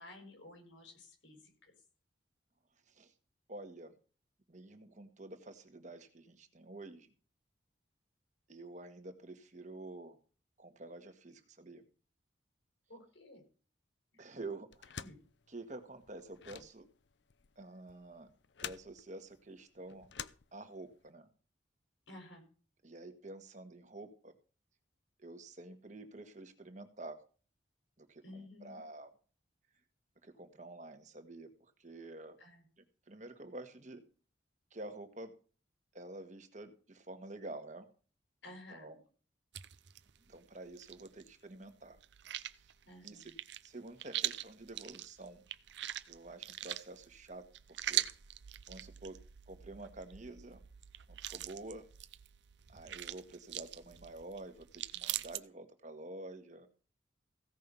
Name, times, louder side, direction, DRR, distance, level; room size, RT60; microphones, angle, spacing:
voice 1, 0.0-1.7 12.9-13.4 15.0-15.2 22.1-22.5 28.2-28.8 32.4-32.7 38.4-39.0 42.8-43.3, left 1 dB, 85° left, 4 dB, 5.2 m, -53 dB
voice 2, 3.5-3.9 4.5-7.1 8.5-10.2 10.6-11.8 14.2-15.0 15.5-16.9 17.6-18.3 18.6-20.1 20.5-21.3 22.8-24.3 25.2-27.2 28.0-28.2 28.6-29.1 30.2-32.4 33.1-34.0 34.7-35.3 35.9-37.8 38.7-39.0 40.3-42.0 43.0-43.3 43.6-45.4 46.1-48.0 48.7-49.2 49.5-50.6 51.3-51.8 52.7-56.7, right 2 dB, 40° right, 7 dB, 1.6 m, -49 dB
sound 1, 14.7-21.1, left 8 dB, 70° left, 0.7 m, -49 dB
sound 2, 39.5-41.4 41.6-55.4, right 13 dB, 70° right, 0.7 m, -42 dB
16.0 x 5.6 x 6.8 m, 0.38 s
head